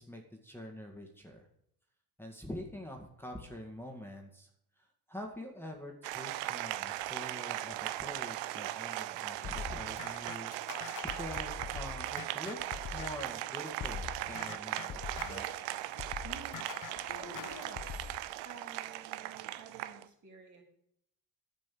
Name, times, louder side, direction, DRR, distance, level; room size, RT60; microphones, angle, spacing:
voice 1, 0.0-1.5 2.2-4.5 4.8-10.8 11.1-12.6 12.9-15.5, equal, 5° left, 0 dB, 1.9 m, -45 dB
Applause, 6.0-20.1, right 15 dB, 90° right, 0.6 m, -39 dB
sound 1, 9.4-13.4 13.8-18.2, left 8 dB, 45° left, 0.9 m, -44 dB
voice 2, 16.2-18.0 18.4-20.6, right 4 dB, 40° right, 1 dB, 3.6 m, -52 dB
11.0 x 5.3 x 8.5 m, 0.74 s
supercardioid pair, 70°, 42 cm